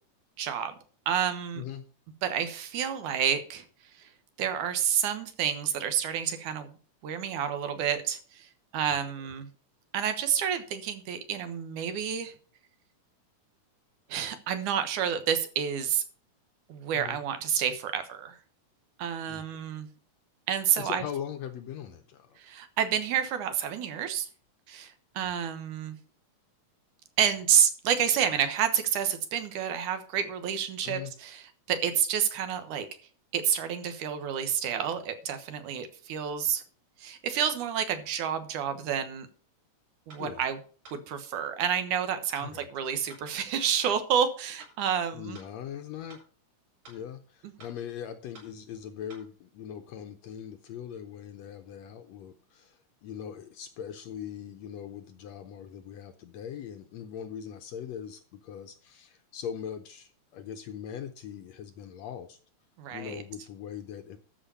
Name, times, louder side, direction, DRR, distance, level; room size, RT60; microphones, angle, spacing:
voice 1, 0.4-0.8 1.1-1.6 2.2-3.7 4.0-4.1 4.4-6.7 7.0-8.5 8.7-9.5 9.9-12.3 14.1-16.0 16.7-18.4 19.0-19.9 20.5-21.0 22.4-24.3 24.7-26.0 27.2-32.9 33.3-36.6 37.0-39.3 40.1-40.6 40.9-45.4 62.8-63.2, right 8 dB, 75° right, 9 dB, 2.6 m, -29 dB
voice 2, 20.8-22.4 25.2-25.3 30.8-31.1 40.2-40.4 42.4-42.7 45.1-46.2 46.9-62.4 62.9-64.2, left 9 dB, 70° left, 8 dB, 1.7 m, -40 dB
sound 1, 40.1-40.2 40.8-41.0 41.6-41.7 42.3-42.5 43.1-43.2 43.8-44.0 44.6-44.7 45.3-45.5 46.1-46.2 46.8-47.0 47.6-47.7 48.3-48.5 49.1-49.2, right 2 dB, 50° right, 7.0 m, -50 dB
13.0 x 5.0 x 6.9 m, 0.40 s
omnidirectional pair, 3.7 m